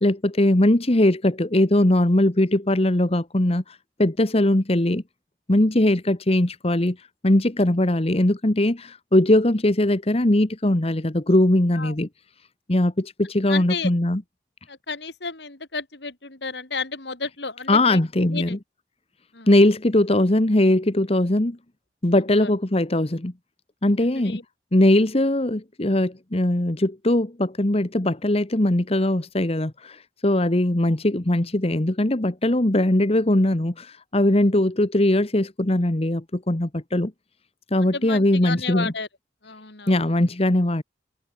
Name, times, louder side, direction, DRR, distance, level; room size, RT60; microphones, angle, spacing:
voice 1, 0.0-5.0 5.5-12.1 12.7-14.2 17.7-18.6 19.5-21.6 22.0-23.3 23.8-24.4 24.7-37.1 37.7-38.9 39.9-40.8, left 1 dB, 35° left, 1.3 m, -20 dB
voice 2, 13.5-13.9 14.7-18.6 19.3-19.5 22.4-22.5 24.1-24.4 37.8-39.1 39.4-40.0, left 4 dB, 65° left, 2.9 m, -32 dB
head